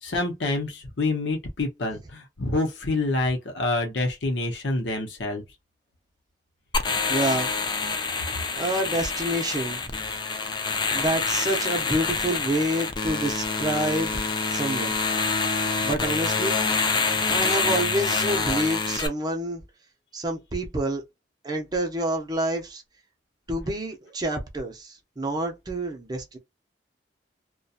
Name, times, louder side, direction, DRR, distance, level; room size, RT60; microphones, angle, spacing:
voice 1, 0.0-5.4, left 2 dB, 80° left, 0.7 m, -27 dB
sound 1, 6.7-19.1, left 4 dB, 25° left, 0.4 m, -26 dB
voice 2, 7.1-7.5 8.5-9.9 10.9-14.1 14.5-14.9 15.8-16.6 17.3-19.6 20.1-21.0 21.4-22.8 23.5-26.4, right 1 dB, 25° right, 0.6 m, -28 dB
2.7 x 2.2 x 2.3 m
head